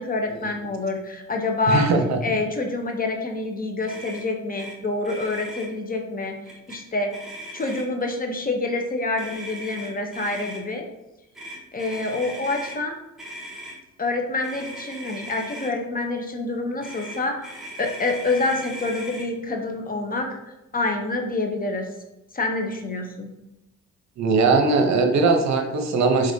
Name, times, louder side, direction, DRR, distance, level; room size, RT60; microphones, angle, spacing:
voice 1, 0.0-1.8 2.2-6.4 6.7-7.1 7.5-10.9 11.7-13.0 14.0-17.4 17.8-20.4 20.7-21.9 22.3-23.3, left 3 dB, 30° left, 3 dB, 0.8 m, -27 dB
voice 2, 1.7-2.2 24.2-26.3, right 4 dB, 65° right, 5 dB, 0.8 m, -20 dB
Motor vehicle (road), 3.9-4.2 4.6-4.7 5.0-5.7 6.5-6.8 7.1-8.0 9.2-10.6 11.3-12.8 13.2-13.8 14.4-15.7 16.8-19.3, equal, ahead, 1.6 m, -38 dB
4.9 x 3.9 x 2.7 m, 0.96 s
cardioid pair, 90°, 30 cm